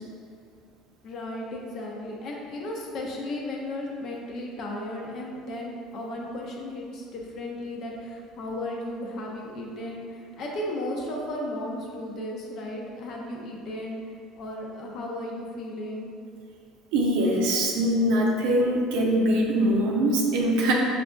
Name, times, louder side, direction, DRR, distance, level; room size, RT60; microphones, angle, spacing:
voice 1, 1.0-14.0 14.3-16.1, left 1 dB, 50° left, -1 dB, 0.7 m, -35 dB
voice 2, 16.9-20.7, right 1 dB, 65° right, -1 dB, 0.6 m, -23 dB
5.7 x 2.6 x 2.3 m, 2.2 s
hypercardioid pair, 65°, 0 cm